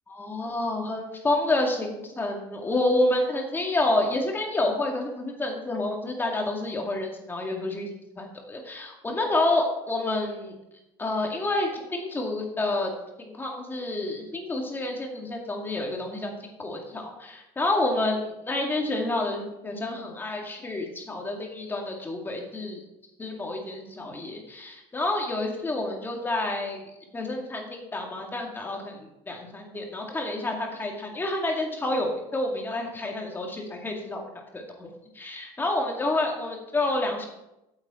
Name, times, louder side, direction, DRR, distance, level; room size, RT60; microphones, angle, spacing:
voice 1, 0.1-10.5 11.0-12.9 13.2-22.8 23.2-26.8 27.1-34.2 34.5-37.3, left 2 dB, 20° left, 1 dB, 2.1 m, -29 dB
8.7 x 7.9 x 4.3 m, 0.91 s
cardioid pair, 120°, 11 cm